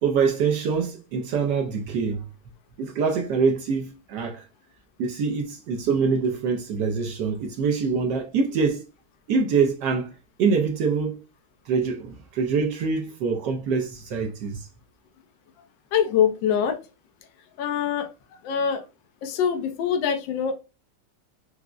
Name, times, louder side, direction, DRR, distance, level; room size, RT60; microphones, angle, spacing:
voice 1, 0.0-2.2 2.8-4.4 5.0-8.8 9.3-10.1 10.4-11.2 11.7-14.7, right 5 dB, 75° right, 1.0 m, -24 dB
voice 2, 15.9-16.8 17.6-18.1 18.4-18.8 19.2-20.5, left 8 dB, 70° left, 1.2 m, -23 dB
4.7 x 2.0 x 2.3 m
omnidirectional pair, 2.3 m